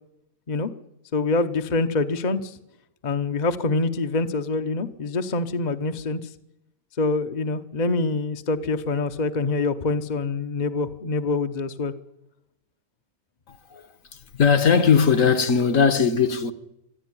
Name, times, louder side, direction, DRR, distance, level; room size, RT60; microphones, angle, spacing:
voice 1, 1.1-2.6 3.0-6.3 7.0-11.9, left 3 dB, 35° left, 0.8 m, -25 dB
voice 2, 14.3-16.5, left 6 dB, 55° left, 1.5 m, -19 dB
22.5 x 13.5 x 9.9 m
omnidirectional pair, 1.8 m